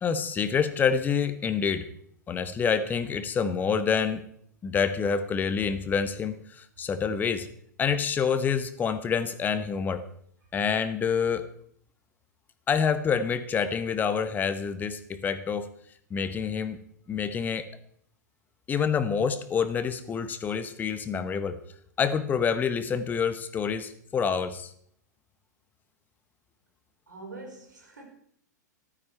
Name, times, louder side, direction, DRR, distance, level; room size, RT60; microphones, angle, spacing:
voice 1, 0.0-1.9 2.3-4.2 4.6-7.5 7.8-10.0 10.5-11.4 12.7-15.7 16.1-16.8 17.1-17.7 18.7-21.6 22.0-24.7, left 6 dB, 20° left, 12 dB, 1.1 m, -27 dB
voice 2, 27.1-28.0, right 2 dB, 75° right, 2 dB, 4.7 m, -44 dB
14.5 x 12.5 x 4.5 m, 0.66 s
figure-of-eight pair, 105°, 10 cm